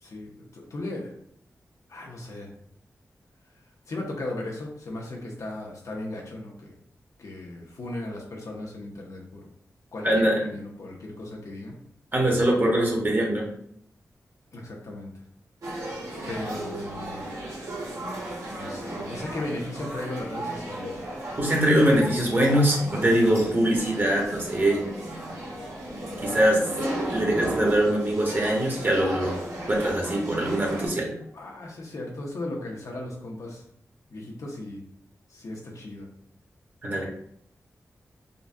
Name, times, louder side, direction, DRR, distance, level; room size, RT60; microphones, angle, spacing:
voice 1, 0.0-1.1 1.9-2.5 3.9-6.7 7.2-9.5 9.9-11.8 14.5-15.1 16.3-17.2 18.6-21.1 31.3-33.6 34.1-34.8 35.3-36.1, left 2 dB, 65° left, -1 dB, 0.8 m, -36 dB
voice 2, 10.0-10.4 12.1-13.4 21.4-24.9 26.2-26.6 27.1-29.4 29.7-31.1 36.8-37.0, right 1 dB, 35° right, -2 dB, 1.1 m, -22 dB
sound 1, 15.6-30.9, right 1 dB, 70° right, 1.1 m, -34 dB
3.8 x 2.3 x 2.2 m, 0.67 s
cardioid pair, 55°, 6 cm